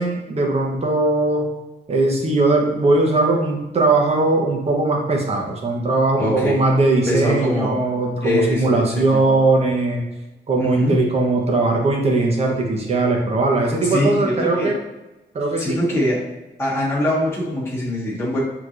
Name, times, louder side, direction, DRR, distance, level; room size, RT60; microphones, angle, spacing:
voice 1, 0.0-1.4 1.9-10.0 10.5-14.8 15.3-15.8, right 2 dB, 35° right, 0 dB, 1.0 m, -19 dB
voice 2, 6.2-6.6 7.1-7.8 8.2-9.2 10.6-10.9 13.9-14.7 15.5-16.2 16.6-18.4, left 1 dB, 15° left, -7 dB, 1.4 m, -22 dB
6.4 x 3.0 x 2.5 m, 1.1 s
wide cardioid pair, 135°, 18 cm